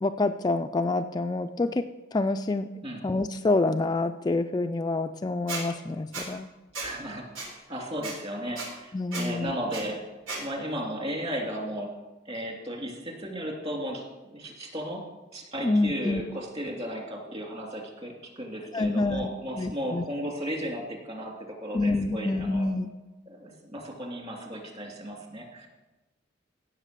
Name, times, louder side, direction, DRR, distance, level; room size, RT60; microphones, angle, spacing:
voice 1, 0.0-2.7 3.0-6.5 8.9-9.5 15.6-16.2 18.7-19.3 19.6-20.0 21.7-22.9, left 2 dB, 20° left, 6 dB, 0.3 m, -27 dB
Squeak, 5.5-5.6 6.1-6.3 6.7-6.9 7.4-7.5 8.0-8.1 8.6-8.7 9.1-9.3 9.7-9.8 10.3-10.4, right 3 dB, 90° right, 3.5 m, -34 dB
voice 2, 6.8-10.0 10.4-11.9 12.3-15.0 15.3-22.7 23.3-25.7, equal, 30° right, 1 dB, 2.7 m, -35 dB
16.5 x 6.5 x 6.7 m, 1.1 s
head